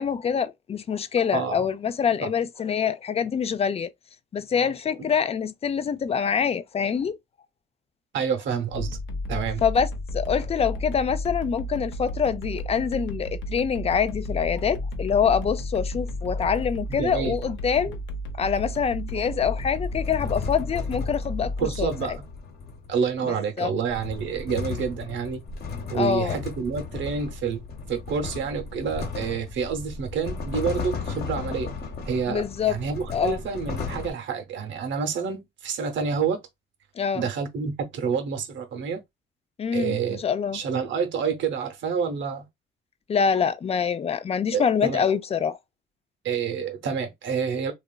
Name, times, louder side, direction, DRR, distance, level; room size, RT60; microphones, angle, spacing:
voice 1, 0.0-3.9 4.3-7.2 9.6-9.9 10.1-18.0 18.4-22.2 23.2-23.7 25.9-26.4 32.3-32.8 33.1-33.4 37.0-37.3 39.6-40.6 43.1-45.6, left 7 dB, 30° left, 0.4 m, -25 dB
voice 2, 1.3-1.7 2.2-2.3 8.1-9.0 9.3-9.6 16.9-17.4 21.6-22.2 22.9-25.4 25.9-27.6 27.9-31.7 32.0-36.4 37.1-39.0 39.7-40.2 40.5-42.4 44.5-45.0 46.2-47.7, right 6 dB, 70° right, 0.8 m, -28 dB
sound 1, 8.7-21.9, left 1 dB, 75° left, 0.7 m, -32 dB
sound 2, 16.2-17.6 18.5-23.1 23.7-34.1, left 5 dB, 55° left, 1.0 m, -36 dB
2.9 x 2.4 x 2.3 m
cardioid pair, 90°, 20 cm